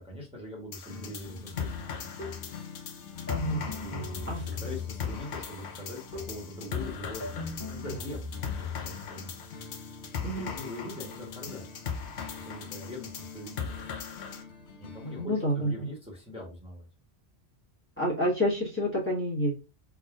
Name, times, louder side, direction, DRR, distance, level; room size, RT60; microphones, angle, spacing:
voice 1, 0.0-2.1 3.8-8.3 8.6-9.3 10.2-11.7 12.4-13.8 14.8-16.8, left 1 dB, 5° right, -3 dB, 1.3 m, -42 dB
sound 1, 0.7-14.4, left 6 dB, 60° left, 0.7 m, -39 dB
sound 2, 0.9-15.3, left 5 dB, 90° left, 1.0 m, -46 dB
sound 3, 2.2-2.6 3.3-5.2 6.1-6.5 7.2-8.9, left 4 dB, 45° left, 1.5 m, -38 dB
voice 2, 3.3-3.7 4.3-4.4 10.2-10.5 15.2-15.7 18.0-19.5, equal, 10° left, -5 dB, 1.3 m, -28 dB
4.0 x 3.6 x 2.5 m, 0.29 s
omnidirectional pair, 1.1 m